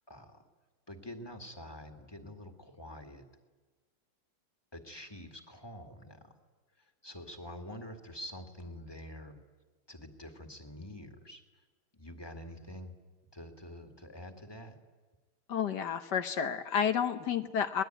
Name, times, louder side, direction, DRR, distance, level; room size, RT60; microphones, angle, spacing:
voice 1, 0.1-0.4 0.9-3.2 4.7-6.3 6.8-9.4 9.9-11.4 11.9-13.0 13.3-14.8, left 1 dB, 10° left, 4 dB, 1.9 m, -46 dB
voice 2, 15.5-17.8, left 8 dB, 60° left, 9 dB, 1.4 m, -31 dB
26.0 x 19.5 x 9.1 m, 1.3 s
omnidirectional pair, 2.3 m